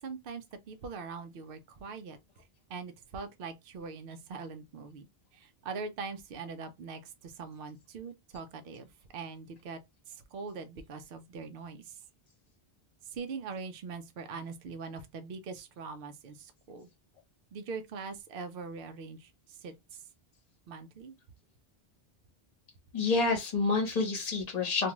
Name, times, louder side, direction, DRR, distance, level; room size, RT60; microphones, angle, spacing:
voice 1, 0.0-2.2 2.7-5.1 5.3-9.8 10.1-12.0 13.0-16.9 17.5-20.0 20.7-21.2, right 4 dB, 65° right, 0.7 m, -42 dB
voice 2, 22.9-24.9, left 3 dB, 40° left, 1.0 m, -28 dB
2.5 x 2.3 x 2.9 m
omnidirectional pair, 1.0 m